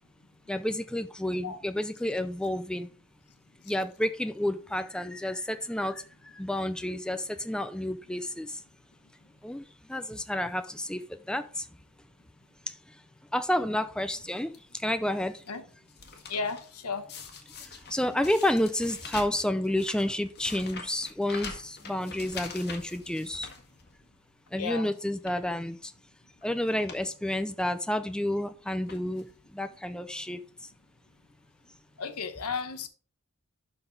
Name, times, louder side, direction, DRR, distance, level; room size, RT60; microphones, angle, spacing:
voice 1, 0.5-2.9 3.7-8.6 9.4-9.6 9.9-11.0 11.3-11.7 13.3-15.4 17.9-23.5 24.5-25.9 26.4-29.2 29.5-30.4, left 1 dB, 5° left, 0.4 m, -30 dB
sound 1, 14.1-14.6 15.1-16.7 17.1-24.2 24.6-24.7 25.1-25.5 26.3-26.4 26.7-27.0 27.4-27.5 28.3-28.5 28.9-29.4 30.1-30.2 30.4-30.5, left 5 dB, 50° left, 1.5 m, -44 dB
voice 2, 16.3-17.1 24.6-24.9 32.0-32.9, left 5 dB, 80° left, 1.1 m, -33 dB
11.5 x 3.9 x 4.0 m
head